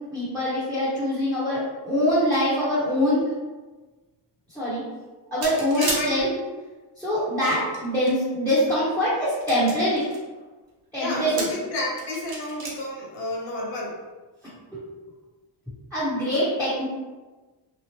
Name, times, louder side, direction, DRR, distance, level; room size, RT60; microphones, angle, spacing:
voice 1, 0.1-3.2 4.5-4.8 5.3-6.3 7.0-10.0 10.9-11.5 14.7-14.8 15.9-16.9, equal, 5° left, -10 dB, 0.9 m, -24 dB
sound 1, 5.4-6.0 7.1-8.1 8.7-8.8 9.3-10.2 11.1-11.6 12.0-12.7, right 2 dB, 50° right, 0.9 m, -31 dB
voice 2, 5.8-6.2 11.0-14.0, left 1 dB, 65° left, -3 dB, 0.9 m, -30 dB
2.9 x 2.0 x 2.9 m, 1.2 s
cardioid pair, 110°, 46 cm